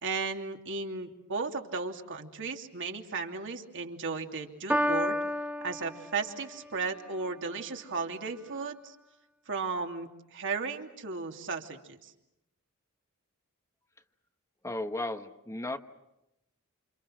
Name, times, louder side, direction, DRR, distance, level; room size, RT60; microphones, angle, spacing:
voice 1, 0.0-5.2 5.6-9.0 9.5-12.1, right 4 dB, 60° right, 3 dB, 2.9 m, -35 dB
Piano, 4.7-6.7, equal, 10° right, 1.6 m, -31 dB
voice 2, 14.6-15.8, left 2 dB, 15° left, 7 dB, 1.2 m, -35 dB
29.0 x 28.5 x 6.3 m, 0.88 s
head